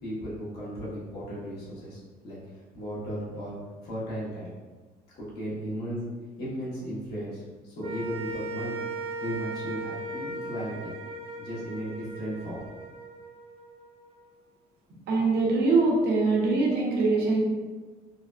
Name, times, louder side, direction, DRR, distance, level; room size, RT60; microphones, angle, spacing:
voice 1, 0.0-3.5 3.8-4.5 5.1-6.1 6.4-8.8 9.2-10.9 11.4-12.6, equal, 70° left, -7 dB, 1.4 m, -36 dB
sound 1, 7.8-14.2, right 2 dB, 35° right, 0.4 m, -38 dB
voice 2, 15.1-17.4, right 3 dB, 75° right, -2 dB, 0.8 m, -23 dB
3.8 x 2.1 x 2.4 m, 1.3 s
cardioid pair, 110°, 17 cm